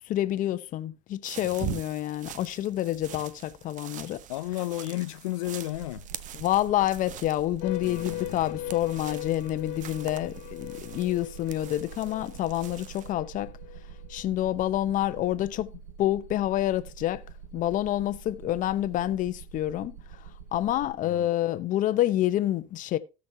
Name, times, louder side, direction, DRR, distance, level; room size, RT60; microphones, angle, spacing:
voice 1, 0.1-4.2 6.4-13.5 14.1-15.7 16.0-17.2 17.5-19.9 20.5-23.0, left 13 dB, 55° left, 0.9 m, -28 dB
sound 1, 1.2-13.1, right 11 dB, 50° right, 0.9 m, -43 dB
voice 2, 4.3-6.1 7.9-8.6 21.0-21.3, left 18 dB, 90° left, 0.4 m, -33 dB
sound 2, 5.7-21.0, right 7 dB, 85° right, 0.9 m, -46 dB
sound 3, 7.6-14.3, left 14 dB, 70° left, 1.7 m, -40 dB
17.0 x 6.3 x 2.8 m
supercardioid pair, 85°, 16 cm